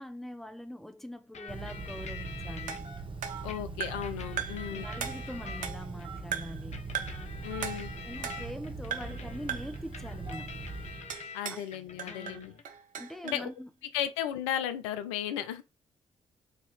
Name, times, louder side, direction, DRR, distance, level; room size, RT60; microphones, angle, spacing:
voice 1, 0.0-2.9 4.7-6.9 8.0-10.5 11.5-11.6 12.0-12.5 13.0-13.7, equal, ahead, 0.7 m, -43 dB
sound 1, 1.3-2.8 3.5-6.1 6.7-11.4 11.7-12.6, left 6 dB, 50° left, 0.7 m, -46 dB
Telephone, 1.5-11.2, right 3 dB, 35° right, 1.0 m, -41 dB
sound 2, 2.7-4.1 4.4-4.7 5.0-6.0 6.3-6.7 6.9-7.3 7.6-8.6 8.9-9.2 9.5-9.8 11.1-11.7 12.0-13.5, right 8 dB, 65° right, 0.6 m, -38 dB
voice 2, 3.4-4.9 7.4-7.9 11.3-12.5 13.2-13.5 13.9-15.6, left 11 dB, 85° left, 0.4 m, -35 dB
4.4 x 2.8 x 3.1 m
hypercardioid pair, 40°, 15 cm